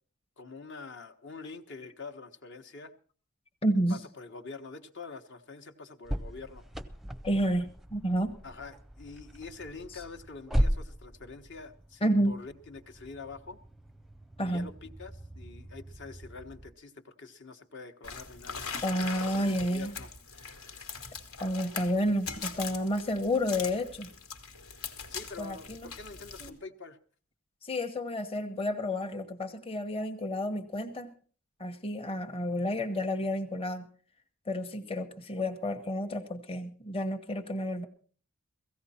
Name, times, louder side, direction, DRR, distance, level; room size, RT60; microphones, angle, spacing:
voice 1, 0.4-2.9 3.9-6.6 8.4-13.6 14.4-19.0 19.3-20.1 25.1-27.0, left 4 dB, 60° left, 1.2 m, -45 dB
voice 2, 3.6-4.0 7.2-8.3 12.0-12.3 14.4-14.7 18.8-19.9 21.4-24.1 25.4-25.8 26.4-26.5 27.6-31.1 31.6-33.9 34.5-37.9, equal, 25° left, 1.0 m, -30 dB
sound 1, 6.0-16.7, equal, ahead, 0.6 m, -37 dB
sound 2, 18.0-26.5, left 5 dB, 90° left, 1.9 m, -41 dB
17.0 x 15.5 x 4.3 m
head